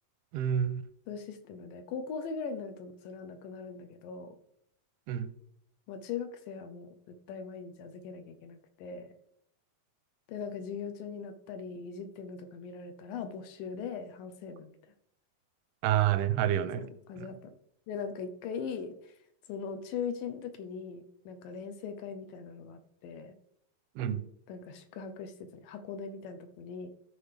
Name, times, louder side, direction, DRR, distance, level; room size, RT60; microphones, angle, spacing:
voice 1, 0.3-0.8 5.1-5.3 15.8-16.9 17.2-17.3 24.0-24.2, right 10 dB, 90° right, 2.5 m, -28 dB
voice 2, 1.1-4.3 5.9-6.9 7.3-9.1 10.3-14.8 16.8-17.5 17.9-18.9 19.5-23.3 24.5-25.3 25.6-26.9, left 6 dB, 75° left, 2.2 m, -40 dB
14.0 x 4.9 x 3.3 m
omnidirectional pair, 4.4 m